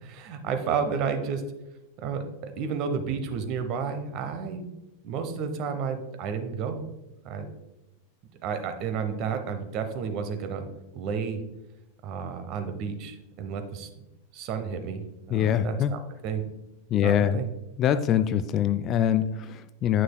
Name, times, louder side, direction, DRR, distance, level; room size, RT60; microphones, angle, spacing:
voice 1, 0.0-1.4 2.0-4.7 5.0-6.8 7.2-7.5 8.4-10.7 10.9-11.4 12.0-13.9 14.3-16.4 17.0-17.5, right 6 dB, 40° right, 7 dB, 0.9 m, -31 dB
voice 2, 15.3-15.9 16.9-17.4 17.8-20.0, left 10 dB, 30° left, 12 dB, 0.3 m, -24 dB
9.3 x 6.3 x 2.2 m, 0.94 s
figure-of-eight pair, 90°, 0 cm